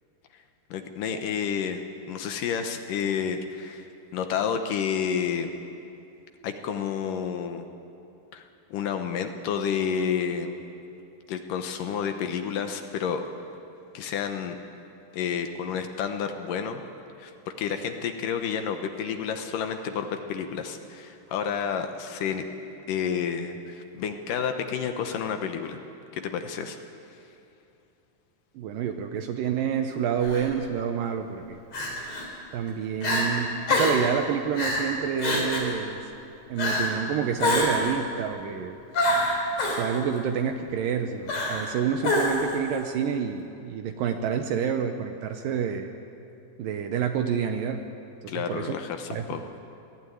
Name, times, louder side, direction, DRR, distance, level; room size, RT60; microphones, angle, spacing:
voice 1, 0.7-5.5 6.4-7.6 8.3-8.4 8.7-10.6 11.3-13.2 13.9-14.6 15.1-16.8 17.2-17.3 17.6-22.5 22.9-25.8 26.1-26.8 48.3-49.4, left 7 dB, 70° left, 6 dB, 2.1 m, -30 dB
voice 2, 28.6-31.6 32.5-36.0 36.5-38.8 39.7-45.9 46.6-47.8 48.2-48.8 49.1-49.3, right 7 dB, 75° right, 6 dB, 2.0 m, -28 dB
Crying sobbing, 30.2-30.5 31.7-32.3 32.7-32.8 33.0-33.3 33.7-34.1 34.6-34.9 35.2-35.7 36.6-37.0 37.4-37.9 38.9-39.8 41.3-41.7 42.0-42.6, left 1 dB, 40° left, 4.1 m, -25 dB
21.0 x 15.0 x 9.3 m, 2.7 s
omnidirectional pair, 4.9 m